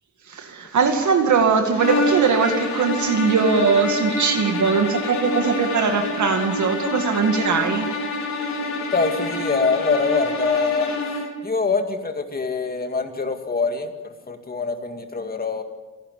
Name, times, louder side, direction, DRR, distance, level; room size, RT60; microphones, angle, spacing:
voice 1, 0.3-7.9, right 5 dB, 60° right, 5 dB, 2.1 m, -20 dB
sound 1, 1.7-11.4, left 2 dB, 60° left, 5.0 m, -27 dB
voice 2, 8.9-10.9 11.4-15.6, left 4 dB, 30° left, 5 dB, 2.2 m, -24 dB
29.0 x 12.0 x 8.4 m, 1.3 s
wide cardioid pair, 135°, 33 cm